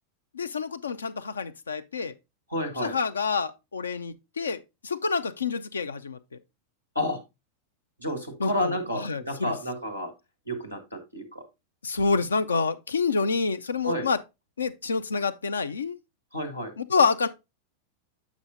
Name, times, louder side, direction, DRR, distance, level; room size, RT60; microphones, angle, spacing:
voice 1, 0.3-2.1 2.8-6.2 8.4-9.5 11.8-14.2 14.6-16.0 16.8-17.3, left 4 dB, 75° left, 0.5 m, -27 dB
voice 2, 2.5-3.0 6.9-7.2 8.0-10.1 10.5-11.4 13.8-14.1 16.3-16.7, left 1 dB, 90° left, 1.5 m, -30 dB
8.2 x 6.1 x 2.5 m
figure-of-eight pair, 90°, 0 cm